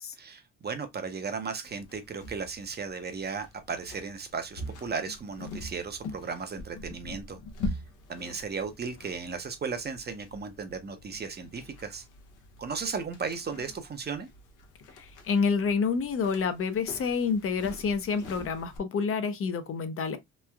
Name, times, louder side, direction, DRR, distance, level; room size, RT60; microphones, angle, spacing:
voice 1, 0.2-7.4 7.6-7.8 8.1-12.0 12.6-14.3, right 5 dB, 35° right, 0.6 m, -35 dB
sound 1, 1.6-18.8, left 2 dB, 85° left, 0.7 m, -43 dB
voice 2, 15.0-20.2, left 5 dB, 50° left, 0.5 m, -28 dB
3.0 x 2.3 x 2.2 m
cardioid pair, 90°, 30 cm